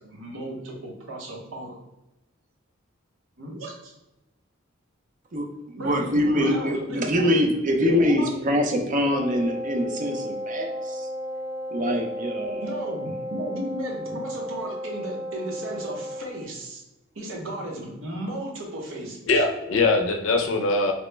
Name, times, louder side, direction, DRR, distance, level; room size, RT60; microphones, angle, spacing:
voice 1, 0.0-1.8 3.4-3.9 5.7-7.5 7.9-8.3 12.6-16.8 17.1-19.4, right 1 dB, 75° right, -1 dB, 0.8 m, -35 dB
voice 2, 5.3-11.1 11.7-12.8, left 1 dB, 40° right, 3 dB, 0.5 m, -24 dB
Wind instrument woodwind instrument, 9.1-16.4, equal, 15° right, 0.8 m, -34 dB
voice 3, 19.3-20.9, left 3 dB, 70° left, 3 dB, 0.5 m, -22 dB
3.0 x 2.0 x 3.2 m, 0.98 s
head